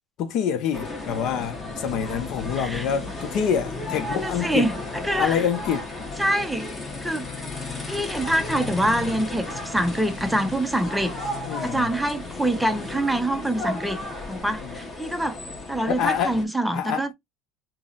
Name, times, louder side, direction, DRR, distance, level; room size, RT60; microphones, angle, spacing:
voice 1, 0.2-4.7 5.2-5.9 11.5-11.9 16.0-16.4 16.7-17.1, left 7 dB, 55° left, 0.6 m, -26 dB
sound 1, 0.7-16.4, left 2 dB, 20° left, 1.0 m, -34 dB
voice 2, 2.6-2.9 4.1-5.4 6.2-6.7 7.0-7.3 7.9-11.1 11.6-14.0 14.3-15.4 15.7-17.1, right 1 dB, 5° right, 0.5 m, -25 dB
3.7 x 2.0 x 2.3 m
supercardioid pair, 100°, 0 cm